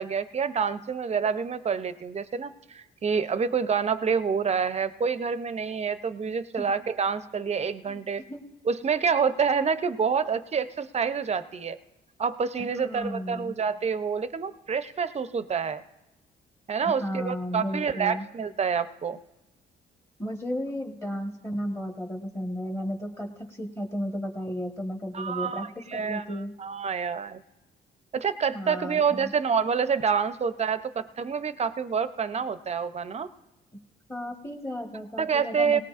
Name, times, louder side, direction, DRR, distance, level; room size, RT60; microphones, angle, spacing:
voice 1, 0.0-8.2 8.7-11.8 12.2-15.8 16.7-19.2 25.1-27.4 28.1-33.3 35.2-35.8, right 6 dB, 35° right, 13 dB, 0.6 m, -27 dB
voice 2, 12.8-13.5 17.0-18.2 20.2-25.6 25.9-26.5 28.5-29.3 34.1-35.8, equal, 15° left, 2 dB, 1.3 m, -34 dB
18.0 x 18.0 x 2.5 m, 1.0 s
cardioid pair, 90°, 20 cm